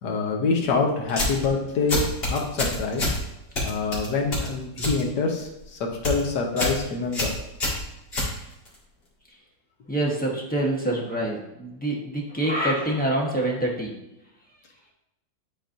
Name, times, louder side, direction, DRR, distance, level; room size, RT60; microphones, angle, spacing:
voice 1, 0.0-2.0 2.3-3.1 3.6-7.3, left 4 dB, 60° left, 1 dB, 1.5 m, -26 dB
sound 1, 1.1-1.5 1.9-3.2 3.6-5.0 5.3-5.6 5.9-6.2 6.6-6.8 7.1-8.8, left 1 dB, 30° left, 2.1 m, -27 dB
voice 2, 9.9-14.0, right 1 dB, 10° left, -4 dB, 0.4 m, -26 dB
10.5 x 4.2 x 2.6 m, 0.88 s
omnidirectional pair, 2.2 m